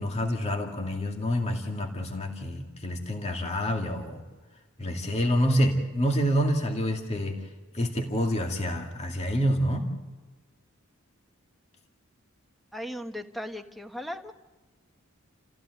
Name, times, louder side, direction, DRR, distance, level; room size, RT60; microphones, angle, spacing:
voice 1, 0.0-4.2 4.8-7.4 7.7-9.9, equal, 30° left, 2 dB, 2.2 m, -27 dB
voice 2, 12.7-14.3, equal, ahead, 6 dB, 1.3 m, -37 dB
29.0 x 15.5 x 7.9 m, 1.3 s
head